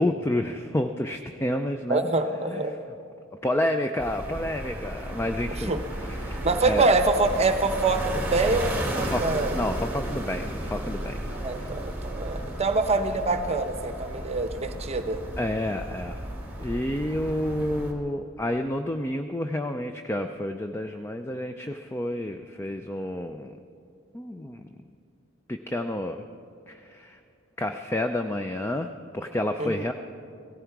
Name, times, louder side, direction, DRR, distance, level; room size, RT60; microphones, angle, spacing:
voice 1, 0.0-2.0 2.5-2.6 3.4-6.9 9.1-9.2 9.5-11.5 15.4-16.2 16.6-23.6 24.1-24.7 25.5-26.2 26.7-27.2 27.6-29.9, left 1 dB, 10° left, 6 dB, 0.3 m, -29 dB
voice 2, 1.9-2.7 5.7-5.8 6.4-9.5 11.3-15.2 29.6-29.9, right 3 dB, 30° right, 8 dB, 0.8 m, -25 dB
sound 1, 4.0-17.9, right 1 dB, 10° right, 1.6 m, -34 dB
17.0 x 14.5 x 4.7 m, 2.5 s
head